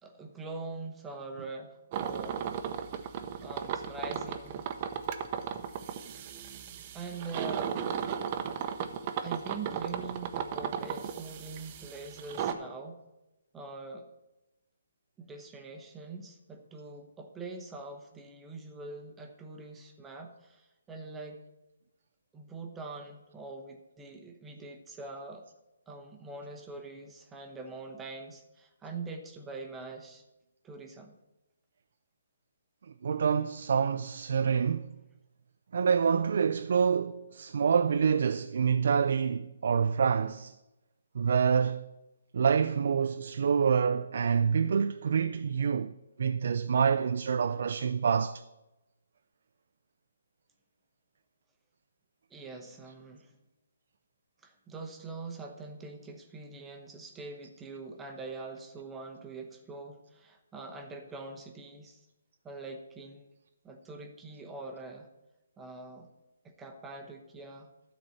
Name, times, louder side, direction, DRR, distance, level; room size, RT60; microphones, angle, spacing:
voice 1, 0.0-2.5 3.4-4.7 6.9-7.8 9.2-13.0 13.5-14.1 15.2-21.4 22.3-25.4 25.9-30.2 30.6-31.2 52.3-53.3 54.4-62.0 62.4-63.3 63.6-65.1 65.6-66.1 66.4-67.7, right 3 dB, 10° right, 0.9 m, -43 dB
sound 1, 1.9-12.5, right 8 dB, 35° right, 0.8 m, -35 dB
voice 2, 33.0-34.9 35.7-40.5 41.1-41.8 42.3-45.9 46.2-48.4, right 6 dB, 60° right, 0.4 m, -27 dB
12.0 x 4.1 x 7.0 m
hypercardioid pair, 150°, 0 cm